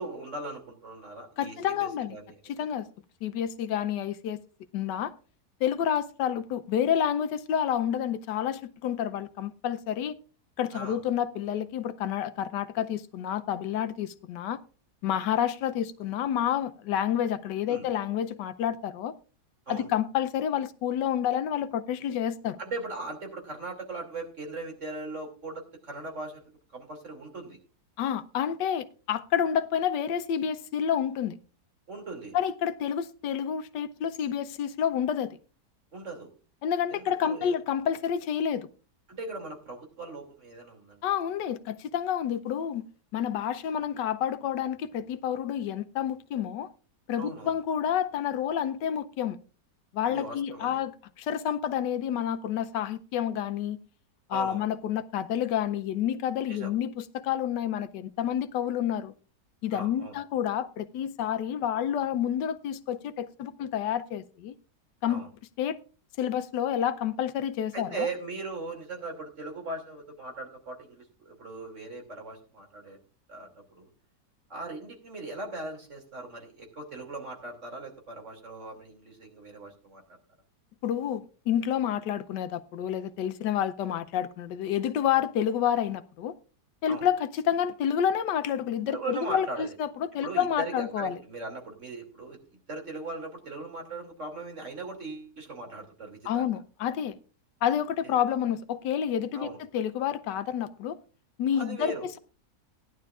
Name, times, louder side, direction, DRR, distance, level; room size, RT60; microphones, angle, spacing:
voice 1, 0.0-2.7 10.7-11.0 17.7-17.9 19.7-19.9 22.6-27.6 31.9-32.4 35.9-36.3 36.9-37.5 39.1-41.0 47.2-47.5 50.0-50.8 54.3-54.6 56.5-56.7 59.7-60.2 65.1-65.3 67.7-73.0 73.3-73.9 74.5-80.0 86.9-87.1 88.8-89.7 90.2-96.4 98.0-98.2 99.3-99.6 101.5-102.1, right 3 dB, 45° right, 3.0 m, -39 dB
voice 2, 1.4-2.2 2.4-2.9 3.2-4.4 4.7-5.1 5.6-10.2 10.6-14.6 15.0-19.1 19.7-22.6 28.0-31.4 32.3-35.4 36.6-38.7 41.0-46.7 47.1-49.4 49.9-53.8 54.3-59.1 59.6-64.5 65.0-65.2 65.6-65.8 66.2-68.1 80.8-86.4 86.8-91.2 96.3-97.2 97.6-101.0 101.4-102.2, left 9 dB, 90° left, 1.3 m, -29 dB
17.0 x 11.0 x 2.4 m
omnidirectional pair, 1.8 m